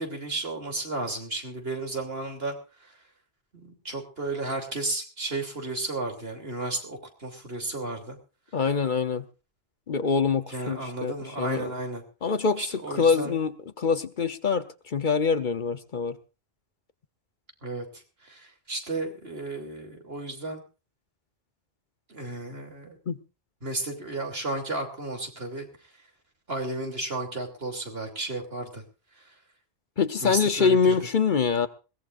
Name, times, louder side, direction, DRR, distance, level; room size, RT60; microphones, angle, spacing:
voice 1, 0.0-2.5 3.5-8.2 10.5-12.0 12.6-13.3 17.6-17.9 18.2-20.6 22.1-23.0 23.6-25.7 26.5-28.8 30.2-31.0, right 2 dB, 65° right, 4 dB, 3.4 m, -33 dB
voice 2, 8.5-9.2 9.9-11.7 12.2-12.6 13.0-16.2 23.1-23.2 30.0-31.7, left 5 dB, 50° left, 11 dB, 1.0 m, -25 dB
21.5 x 18.0 x 2.6 m, 0.33 s
omnidirectional pair, 1.1 m